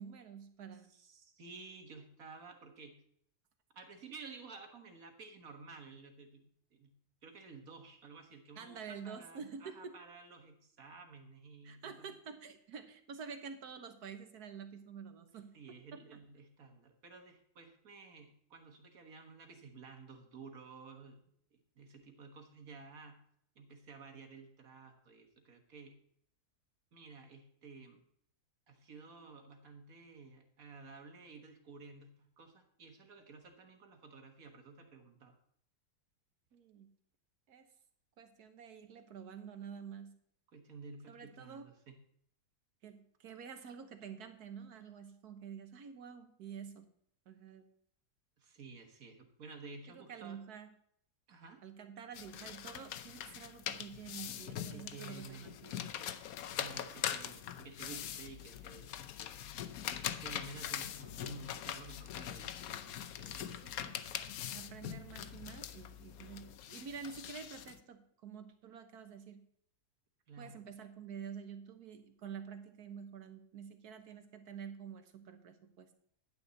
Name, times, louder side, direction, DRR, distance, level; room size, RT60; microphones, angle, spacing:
voice 1, 0.0-0.9 8.5-9.9 11.6-15.6 15.9-16.2 36.5-36.9 37.5-37.7 38.2-40.2 41.1-41.7 42.8-46.9 47.3-47.6 49.9-50.7 51.6-55.9 63.4-64.0 64.5-69.5 70.4-75.9, right 6 dB, 80° right, 8 dB, 1.7 m, -48 dB
voice 2, 0.9-3.0 3.7-7.0 7.2-12.1 15.5-21.2 21.8-23.2 23.6-26.0 26.9-28.0 28.7-35.4 40.5-42.0 48.4-50.4 51.3-51.6 54.6-55.5 56.5-58.9 60.2-62.5 63.2-63.7 70.3-70.6, right 4 dB, 65° right, 5 dB, 1.9 m, -53 dB
sound 1, 52.1-67.8, left 10 dB, 70° left, 1.1 m, -42 dB
11.0 x 9.5 x 4.1 m, 0.67 s
omnidirectional pair, 1.6 m